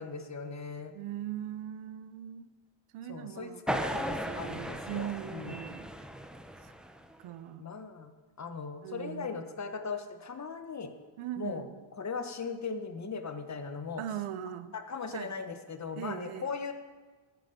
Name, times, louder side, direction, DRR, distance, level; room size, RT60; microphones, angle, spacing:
voice 1, 0.0-0.9 3.1-5.6 7.6-8.1 8.4-10.9 11.4-11.6 12.0-14.0 14.7-16.7, left 5 dB, 35° left, 8 dB, 1.2 m, -38 dB
voice 2, 0.9-2.5 2.9-5.9 7.2-7.9 8.8-9.4 11.2-11.8 14.0-14.7 15.1-15.3 15.9-16.5, right 11 dB, 85° right, 13 dB, 0.8 m, -40 dB
sound 1, 3.7-7.2, equal, ahead, 0.8 m, -37 dB
13.0 x 9.4 x 5.3 m, 1.4 s
cardioid pair, 95°, 49 cm